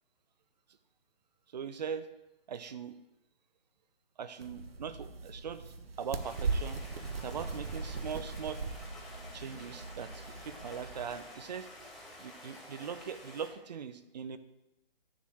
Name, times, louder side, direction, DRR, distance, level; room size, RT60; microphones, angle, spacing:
voice 1, 1.5-2.1 2.5-3.0 4.2-6.8 7.2-8.6 9.3-11.7 12.2-14.4, right 7 dB, 45° right, 12 dB, 0.7 m, -41 dB
sound 1, 4.4-11.1, right 4 dB, 75° right, 1.2 m, -39 dB
Stream, 6.2-13.5, left 1 dB, ahead, 0.9 m, -50 dB
11.0 x 4.7 x 7.8 m, 0.94 s
hypercardioid pair, 160°, 30 cm